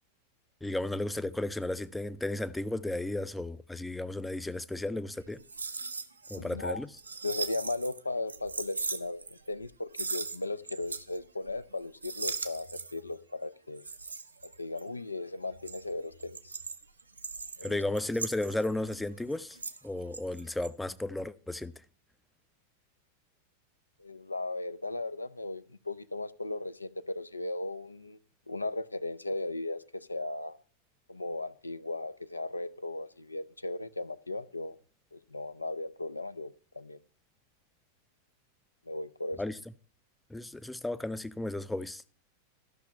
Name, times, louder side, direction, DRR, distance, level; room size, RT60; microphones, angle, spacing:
voice 1, 0.6-5.4 6.3-6.9 17.6-19.6 19.8-21.7 39.4-39.6 40.3-42.0, left 2 dB, 5° left, 0.4 m, -34 dB
sound 1, 5.3-6.4 6.7-8.0 8.3-9.7 9.9-11.2 11.4-11.7 12.0-13.1 13.8-15.0 15.4-19.9 20.1-20.7, right 4 dB, 80° right, 0.7 m, -39 dB
voice 2, 6.3-6.8 7.2-13.8 14.4-16.6 17.6-17.8 24.0-28.2 28.5-30.6 31.1-34.8 35.1-37.0 38.9-39.4, left 2 dB, 85° left, 0.5 m, -37 dB
13.0 x 6.2 x 5.4 m
figure-of-eight pair, 90°, 0 cm